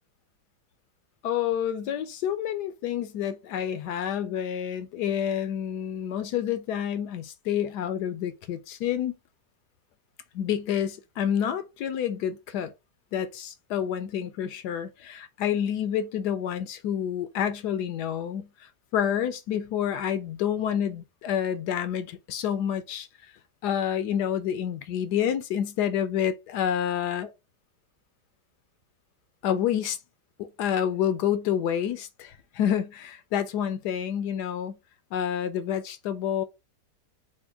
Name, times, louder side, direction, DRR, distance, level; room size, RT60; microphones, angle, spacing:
voice 1, 1.2-9.1 10.3-12.7 13.1-23.1 23.6-27.3 29.4-30.0 30.4-34.8 35.1-36.4, left 9 dB, 75° left, 1.2 m, -28 dB
4.3 x 2.1 x 4.6 m
omnidirectional pair, 1.8 m